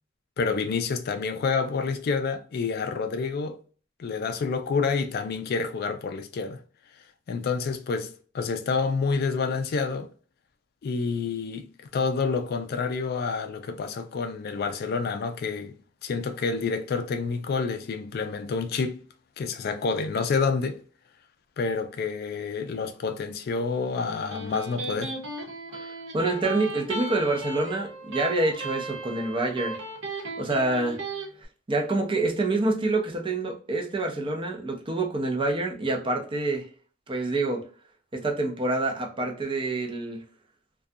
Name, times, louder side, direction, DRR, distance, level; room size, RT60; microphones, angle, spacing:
voice 1, 0.4-3.6 4.0-6.6 7.3-8.1 8.3-10.1 10.8-15.7 16.0-19.0 19.4-20.8 21.6-25.1, left 4 dB, 55° left, 0.3 m, -28 dB
Electric guitar, 23.9-31.3, right 2 dB, 70° right, 0.9 m, -36 dB
voice 2, 25.7-29.8 30.1-31.0 31.7-36.7 37.1-37.6 38.1-40.2, right 2 dB, 25° right, 0.5 m, -27 dB
2.4 x 2.2 x 2.6 m
head